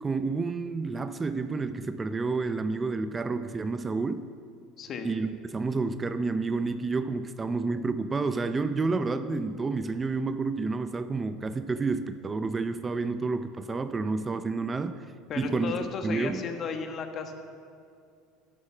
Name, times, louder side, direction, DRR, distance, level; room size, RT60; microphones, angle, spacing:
voice 1, 0.0-4.3 5.0-14.9 15.4-16.4, right 3 dB, 20° right, 11 dB, 0.5 m, -30 dB
voice 2, 4.8-5.1 15.3-17.3, left 5 dB, 45° left, 6 dB, 1.4 m, -34 dB
11.0 x 8.8 x 6.0 m, 2.4 s
supercardioid pair, 100°, 0 cm